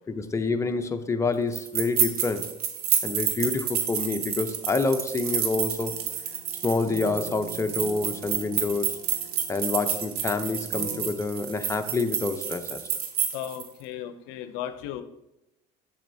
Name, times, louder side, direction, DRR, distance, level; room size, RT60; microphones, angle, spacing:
voice 1, 0.1-2.5 3.0-6.0 6.6-9.0 9.5-12.8, left 3 dB, 15° left, 6 dB, 0.7 m, -27 dB
sound 1, 1.5-13.7, right 8 dB, 90° right, 0.8 m, -29 dB
sound 2, 5.9-11.1, right 2 dB, 55° right, 1.4 m, -44 dB
voice 2, 13.3-15.0, left 11 dB, 75° left, 10 dB, 0.5 m, -35 dB
7.2 x 6.3 x 2.7 m, 0.89 s
hypercardioid pair, 75°, 18 cm